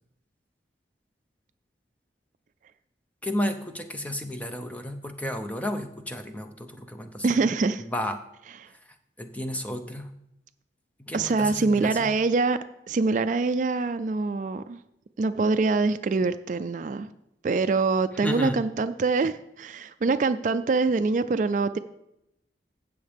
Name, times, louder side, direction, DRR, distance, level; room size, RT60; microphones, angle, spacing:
voice 1, 3.2-7.3 7.9-8.2 9.2-10.1 11.0-12.1 18.2-18.6, left 1 dB, 10° left, 6 dB, 0.6 m, -32 dB
voice 2, 7.2-7.8 11.1-12.6 12.9-14.8 15.2-17.1 17.4-21.8, right 3 dB, 45° right, 11 dB, 0.3 m, -24 dB
15.5 x 6.4 x 3.5 m, 0.85 s
head